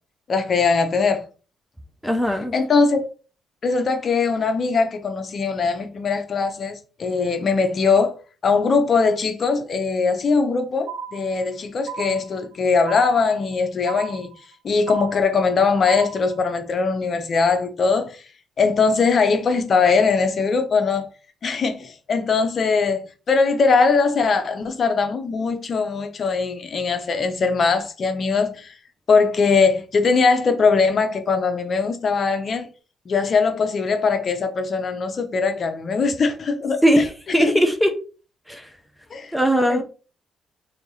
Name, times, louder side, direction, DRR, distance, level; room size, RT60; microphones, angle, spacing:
voice 1, 0.3-1.2 2.5-3.1 3.6-8.1 8.4-14.3 14.6-18.2 18.6-21.1 21.4-28.8 29.1-32.7 33.1-36.8 37.4-37.6 39.1-39.3 39.7-39.8, left 4 dB, 50° left, 0.8 m, -21 dB
voice 2, 2.0-2.5 36.8-37.9 38.5-38.7 39.3-39.8, equal, ahead, 0.6 m, -19 dB
sound 1, 10.9-11.5 11.9-12.5 12.9-13.5 13.9-14.5 14.9-15.5 15.9-16.5, right 6 dB, 80° right, 0.7 m, -35 dB
3.2 x 2.8 x 4.0 m
cardioid pair, 90°, 0 cm